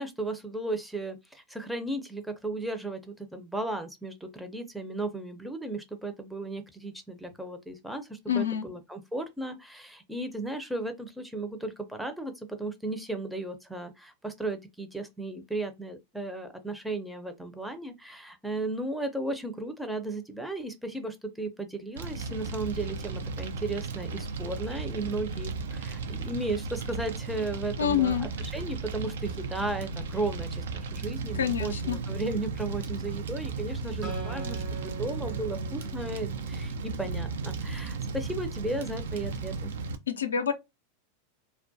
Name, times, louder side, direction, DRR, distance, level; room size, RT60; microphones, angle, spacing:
voice 1, 0.0-39.7, right 2 dB, 5° right, 0.5 m, -35 dB
voice 2, 8.3-8.7 27.8-28.3 31.4-32.0 40.1-40.5, left 8 dB, 85° left, 0.4 m, -27 dB
Fire, 22.0-40.0, right 4 dB, 75° right, 0.4 m, -35 dB
Acoustic guitar, 34.0-37.5, right 2 dB, 45° right, 0.8 m, -44 dB
2.2 x 2.1 x 2.6 m
hypercardioid pair, 100°, 0 cm